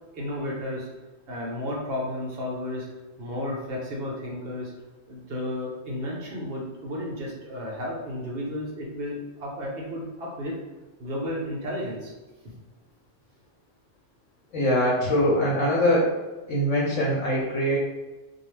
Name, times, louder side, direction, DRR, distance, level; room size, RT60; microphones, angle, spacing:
voice 1, 0.1-0.9 1.3-2.9 3.2-4.7 5.1-10.5 11.0-12.1 12.4-12.5, left 1 dB, 55° right, -2 dB, 0.9 m, -33 dB
voice 2, 14.5-16.1 16.5-17.8, equal, 90° left, -4 dB, 1.0 m, -22 dB
2.4 x 2.3 x 3.2 m, 1.2 s
omnidirectional pair, 1.2 m